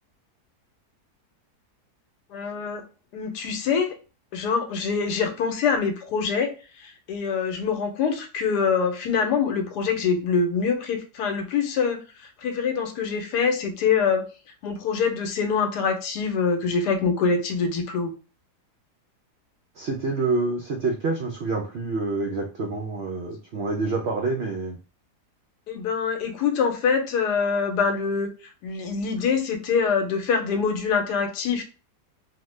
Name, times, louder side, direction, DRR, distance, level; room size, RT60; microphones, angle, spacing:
voice 1, 2.3-2.8 3.1-4.0 4.3-14.3 14.6-18.1 25.7-28.3 28.6-31.6, left 5 dB, 85° left, 6 dB, 1.2 m, -25 dB
voice 2, 19.8-24.8, right 3 dB, 85° right, 1 dB, 0.5 m, -27 dB
3.0 x 2.1 x 3.1 m, 0.34 s
omnidirectional pair, 1.7 m